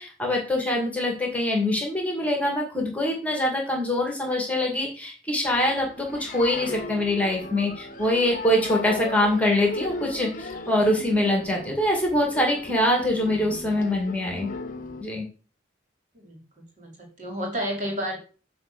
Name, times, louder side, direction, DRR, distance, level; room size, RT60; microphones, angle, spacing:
voice 1, 0.0-14.5 15.0-15.2, left 1 dB, 10° left, 0 dB, 2.0 m, -24 dB
sound 1, 5.4-15.0, left 3 dB, 45° left, 0.9 m, -37 dB
voice 2, 16.1-18.2, equal, 45° right, 0 dB, 2.9 m, -32 dB
9.2 x 3.4 x 6.8 m, 0.37 s
head